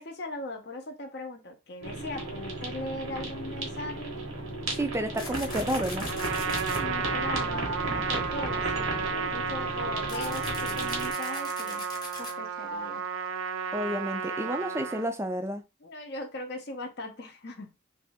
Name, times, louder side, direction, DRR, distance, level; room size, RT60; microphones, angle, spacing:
voice 1, 0.0-4.2 6.8-11.9 12.2-13.0 15.8-17.7, left 2 dB, 50° left, 0.6 m, -39 dB
sound 1, 1.8-11.1, right 2 dB, 90° right, 1.2 m, -34 dB
voice 2, 4.8-6.1 13.7-15.6, right 1 dB, 15° right, 0.3 m, -30 dB
sound 2, 5.2-6.8 10.1-12.3, left 3 dB, 20° left, 0.9 m, -41 dB
Trumpet, 6.1-15.1, right 6 dB, 75° right, 0.5 m, -33 dB
3.0 x 2.8 x 3.4 m
head